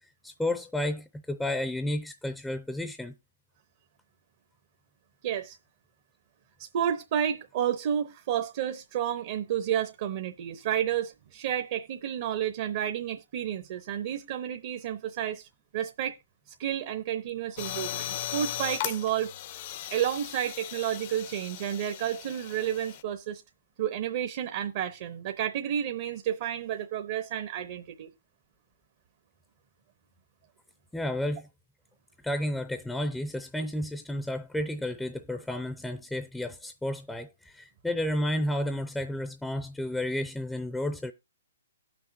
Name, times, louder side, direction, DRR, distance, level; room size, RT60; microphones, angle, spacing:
voice 1, 0.2-3.1 30.9-31.5 32.2-41.1, left 1 dB, 5° left, 0.5 m, -32 dB
voice 2, 5.2-5.6 6.6-15.5 15.7-16.2 16.6-19.3 19.9-23.4 23.8-28.1, right 10 dB, 45° right, 0.7 m, -31 dB
sound 1, 17.6-23.0, left 12 dB, 40° left, 0.6 m, -37 dB
18.0 x 6.1 x 2.6 m
hypercardioid pair, 145°, 0 cm